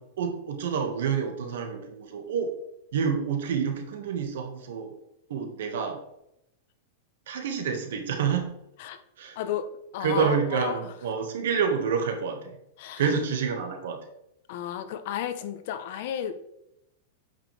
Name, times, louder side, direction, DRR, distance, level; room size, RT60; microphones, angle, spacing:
voice 1, 0.0-2.5 2.9-4.9 5.3-6.0 7.3-8.5 9.2-9.4 10.0-12.6 13.0-14.0, right 6 dB, 75° right, 4 dB, 1.8 m, -28 dB
voice 2, 9.4-9.7 9.9-10.9 12.8-13.0 14.5-16.3, left 10 dB, 55° left, 9 dB, 0.9 m, -33 dB
8.8 x 6.1 x 3.5 m, 0.80 s
supercardioid pair, 150°, 0 cm